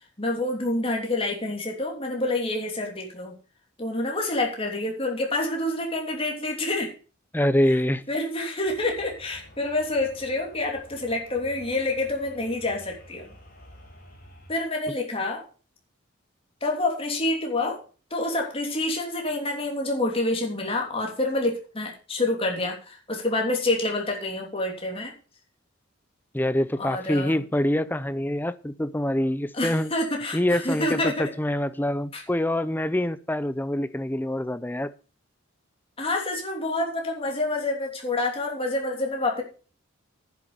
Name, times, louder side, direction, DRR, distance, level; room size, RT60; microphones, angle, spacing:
voice 1, 0.2-3.3 3.8-6.9 8.1-13.3 14.5-15.5 16.6-17.8 18.1-25.1 26.8-27.4 29.5-31.3 32.1-32.2 36.0-39.4, left 2 dB, 25° left, 3.1 m, -27 dB
voice 2, 7.3-8.0 26.3-29.9 30.3-34.9, left 1 dB, 10° left, 0.6 m, -25 dB
sound 1, 8.6-14.6, equal, 45° left, 4.5 m, -50 dB
10.5 x 7.5 x 6.8 m
head